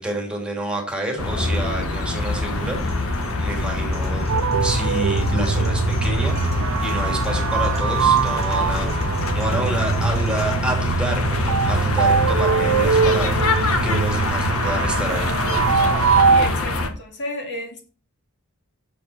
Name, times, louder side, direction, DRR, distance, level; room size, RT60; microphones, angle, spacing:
voice 1, 0.0-4.3 4.6-9.0 9.3-15.3, right 1 dB, 5° right, 2.6 m, -29 dB
sound 1, 1.2-16.9, left 2 dB, 75° left, 1.5 m, -24 dB
sound 2, 2.6-10.5, right 1 dB, 30° left, 3.7 m, -38 dB
sound 3, 4.3-16.5, right 6 dB, 70° right, 0.4 m, -22 dB
voice 2, 16.3-17.9, left 1 dB, 55° left, 2.4 m, -32 dB
8.4 x 7.4 x 4.4 m
head